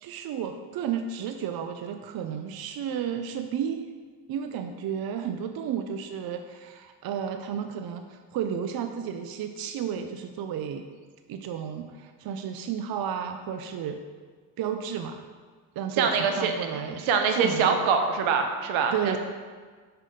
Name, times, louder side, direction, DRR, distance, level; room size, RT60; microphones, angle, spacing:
voice 1, 0.0-3.8 4.3-10.8 11.3-14.0 14.6-15.2 15.8-18.0 18.9-19.2, right 8 dB, 50° right, 7 dB, 0.6 m, -32 dB
voice 2, 16.0-19.2, right 5 dB, 75° right, 5 dB, 1.1 m, -24 dB
6.5 x 5.9 x 5.1 m, 1.5 s
cardioid pair, 120°, 47 cm